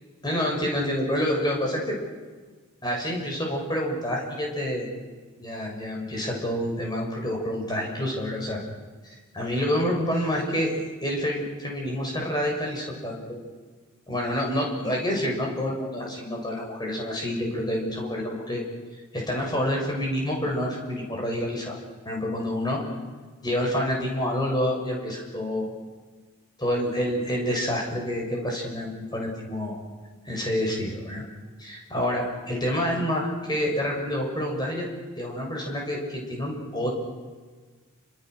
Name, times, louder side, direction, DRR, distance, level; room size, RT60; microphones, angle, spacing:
voice 1, 0.2-2.0 2.8-4.9 5.4-8.6 9.0-10.7 11.0-13.2 14.1-18.6 19.1-21.7 22.0-22.8 23.4-25.7 26.6-29.8 30.3-31.2 31.6-34.9 35.2-36.9, equal, 20° left, -1 dB, 6.9 m, -28 dB
29.0 x 26.5 x 6.6 m, 1.4 s
head